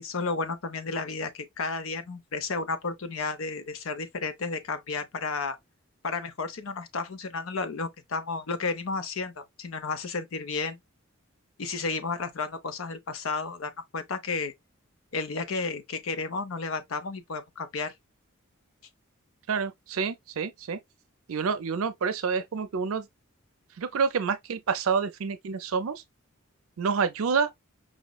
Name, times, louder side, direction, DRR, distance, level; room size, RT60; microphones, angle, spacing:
voice 1, 0.0-5.6 6.0-10.8 11.6-14.5 15.1-17.9, left 4 dB, 80° left, 0.6 m, -32 dB
voice 2, 19.5-20.8 21.3-23.1 23.8-26.0 26.8-27.5, right 5 dB, 85° right, 0.5 m, -28 dB
5.0 x 2.0 x 2.2 m
head